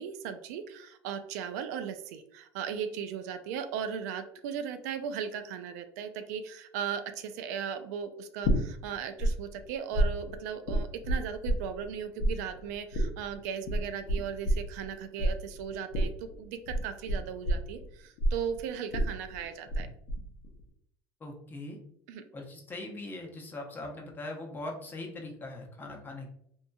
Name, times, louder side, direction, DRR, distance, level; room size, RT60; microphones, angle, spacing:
voice 1, 0.0-19.9 22.1-22.2, right 7 dB, 80° right, 9 dB, 0.4 m, -37 dB
sound 1, 8.4-9.3 9.6-11.9 12.2-19.8 20.1-20.6, right 1 dB, 75° left, 0.8 m, -29 dB
voice 2, 21.2-21.8 22.3-26.3, left 2 dB, 25° left, 1 dB, 0.7 m, -41 dB
2.7 x 2.7 x 2.2 m, 0.70 s
supercardioid pair, 115°, 9 cm